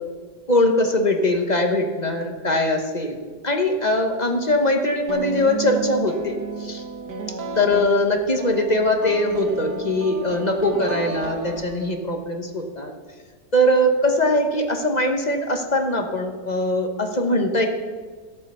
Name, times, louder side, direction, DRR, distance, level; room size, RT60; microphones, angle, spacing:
voice 1, 0.5-3.2 3.4-6.8 7.6-12.9 13.5-17.7, left 1 dB, 30° left, 4 dB, 1.0 m, -21 dB
sound 1, 5.1-12.2, right 4 dB, 70° right, 1.8 m, -33 dB
14.0 x 8.5 x 6.8 m, 1.5 s
omnidirectional pair, 1.9 m